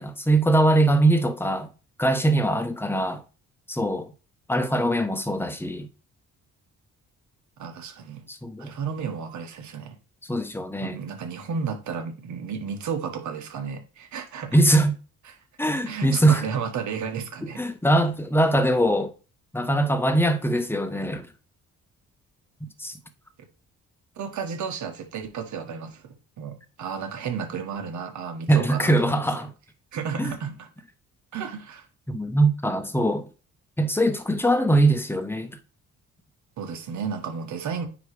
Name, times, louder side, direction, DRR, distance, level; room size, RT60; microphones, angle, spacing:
voice 1, 0.0-1.7 2.0-3.2 3.7-4.1 4.5-5.9 8.3-8.7 10.3-11.0 14.5-14.9 15.6-16.4 17.6-19.1 19.5-21.3 22.6-22.9 28.5-29.5 30.2-30.3 32.1-33.3 33.8-35.6, right 1 dB, 5° left, 1.1 m, -22 dB
voice 2, 7.6-8.2 8.6-10.0 10.8-14.6 15.9-17.6 24.2-29.2 29.9-30.7 31.3-31.8 36.6-37.9, right 6 dB, 70° right, 1.6 m, -33 dB
9.4 x 3.2 x 5.0 m
cardioid pair, 90°, 30 cm